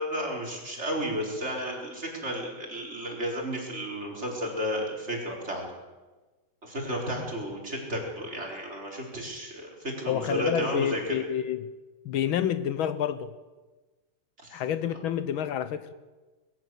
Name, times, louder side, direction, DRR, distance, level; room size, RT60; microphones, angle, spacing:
voice 1, 0.0-5.6 6.6-11.0 14.4-14.6, equal, 30° right, 4.6 m, -32 dB
voice 2, 10.1-11.6 12.0-13.3 14.5-15.9, left 9 dB, 75° left, 1.6 m, -28 dB
21.5 x 15.5 x 7.7 m
omnidirectional pair, 2.3 m